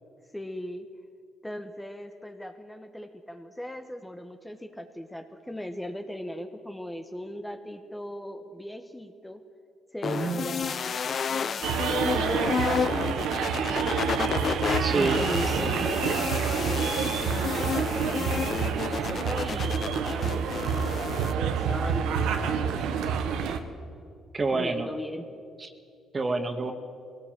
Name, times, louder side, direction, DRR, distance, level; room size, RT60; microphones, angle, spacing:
voice 1, 0.3-0.9 1.4-9.4 9.9-13.9 14.9-23.5 24.5-25.3, equal, 10° left, 6 dB, 1.4 m, -39 dB
sound 1, 10.0-21.3, left 7 dB, 50° left, 0.6 m, -31 dB
voice 2, 10.0-10.5 14.5-15.2 24.3-24.9 25.6-25.7 26.1-26.7, right 3 dB, 35° right, 6 dB, 2.1 m, -28 dB
sound 2, 11.6-23.6, right 7 dB, 80° right, 1.3 m, -28 dB
21.5 x 18.0 x 7.7 m, 2.4 s
supercardioid pair, 70°, 0 cm